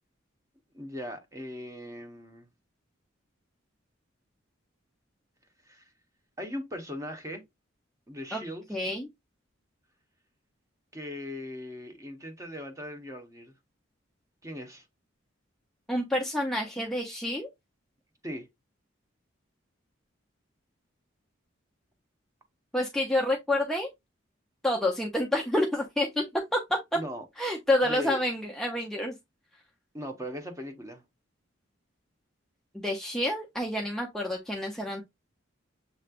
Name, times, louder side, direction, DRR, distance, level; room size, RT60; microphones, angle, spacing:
voice 1, 0.7-2.5 5.6-5.9 6.4-7.4 8.1-8.6 10.9-13.6 14.4-14.9 18.2-18.5 26.9-27.2 27.8-28.2 29.9-31.0, left 1 dB, 15° right, 1.0 m, -39 dB
voice 2, 8.7-9.1 15.9-17.5 22.7-23.9 24.6-26.2 26.5-26.8 27.4-29.2 32.7-35.0, left 1 dB, ahead, 0.6 m, -28 dB
6.8 x 3.2 x 2.4 m
head